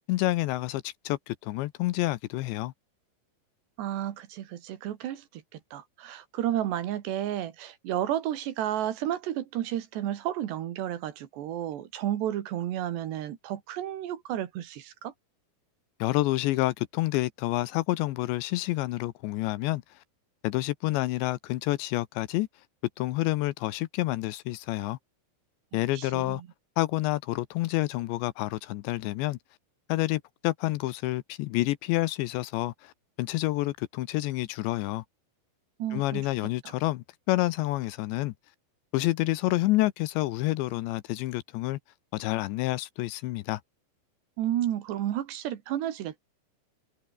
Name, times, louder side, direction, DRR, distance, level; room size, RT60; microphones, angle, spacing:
voice 1, 0.1-2.7 16.0-19.8 20.4-22.5 23.0-25.0 25.7-26.4 26.8-29.4 29.9-32.9 33.2-35.0 35.9-38.3 38.9-41.8 42.1-43.6, left 18 dB, 80° left, 2.9 m, -28 dB
voice 2, 3.8-5.4 5.7-15.1 25.7-26.5 35.8-36.3 44.4-46.2, right 12 dB, 70° right, 3.6 m, -32 dB
omnidirectional pair, 5.5 m